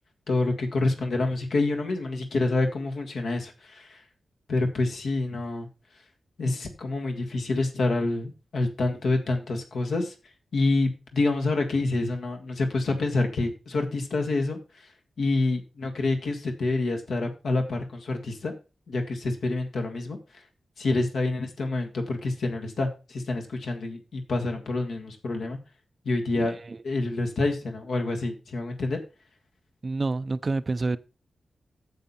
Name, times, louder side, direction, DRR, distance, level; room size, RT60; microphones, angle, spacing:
voice 1, 0.3-4.0 4.5-5.7 6.4-10.1 10.5-14.9 15.2-18.5 18.9-20.2 20.8-25.6 26.1-26.6 26.8-29.0, left 2 dB, 70° left, 1.8 m, -27 dB
voice 2, 26.3-26.8 27.1-27.2 29.8-31.0, right 3 dB, 30° right, 0.4 m, -29 dB
9.0 x 7.2 x 4.2 m
wide cardioid pair, 160°, 0 cm